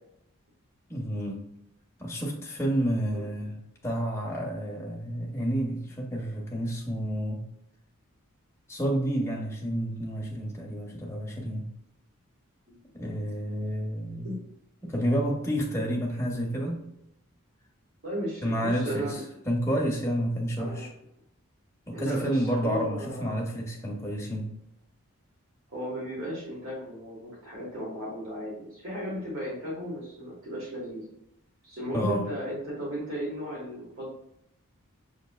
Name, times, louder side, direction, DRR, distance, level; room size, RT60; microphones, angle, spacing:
voice 1, 0.9-1.4 2.0-3.6 3.8-7.4 8.7-11.7 12.9-14.3 14.8-16.8 18.4-20.9 21.9-24.5 31.9-32.3, equal, 10° left, -1 dB, 0.6 m, -30 dB
voice 2, 18.0-19.2 20.6-20.9 21.9-23.4 25.7-31.0 31.6-34.1, equal, 60° right, -5 dB, 1.2 m, -35 dB
5.9 x 2.6 x 2.2 m, 0.80 s
head